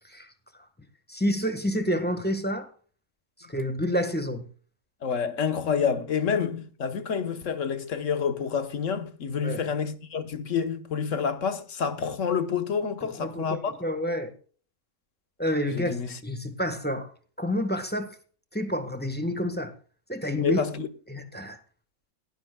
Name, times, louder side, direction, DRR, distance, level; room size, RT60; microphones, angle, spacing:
voice 1, 1.1-2.7 3.5-4.5 9.4-9.6 13.0-14.3 15.4-17.1 17.4-18.1 18.5-19.7 20.1-20.6 21.1-21.6, equal, 5° left, 1.2 m, -29 dB
voice 2, 5.0-13.7 15.7-16.1 20.4-20.9, left 6 dB, 60° left, 1.4 m, -28 dB
18.0 x 11.0 x 2.3 m
omnidirectional pair, 1.5 m